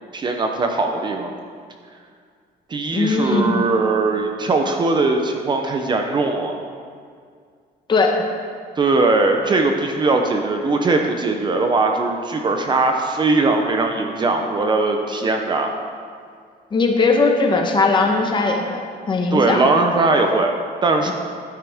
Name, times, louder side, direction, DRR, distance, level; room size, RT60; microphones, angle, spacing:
voice 1, 0.1-1.3 2.7-6.6 8.8-15.7 19.3-20.5 20.8-21.1, right 3 dB, 25° right, 4 dB, 0.7 m, -20 dB
voice 2, 2.9-3.6 7.9-8.3 16.7-19.6 21.1-21.2, left 3 dB, 25° left, 2 dB, 1.1 m, -19 dB
12.5 x 10.5 x 3.6 m, 2.1 s
cardioid pair, 165°, 17 cm